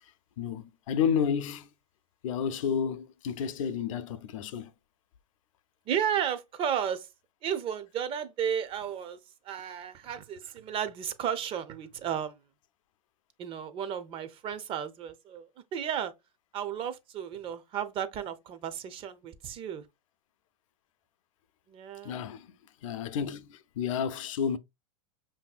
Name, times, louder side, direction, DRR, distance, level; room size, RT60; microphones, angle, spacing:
voice 1, 0.4-1.7 2.2-4.7 22.0-22.5 22.8-24.6, left 7 dB, 70° left, 0.5 m, -31 dB
voice 2, 5.9-7.1 7.4-9.2 9.4-12.4 13.4-16.1 16.5-19.8 21.7-22.2, right 9 dB, 30° right, 0.5 m, -33 dB
5.2 x 2.6 x 2.3 m
hypercardioid pair, 110°, 17 cm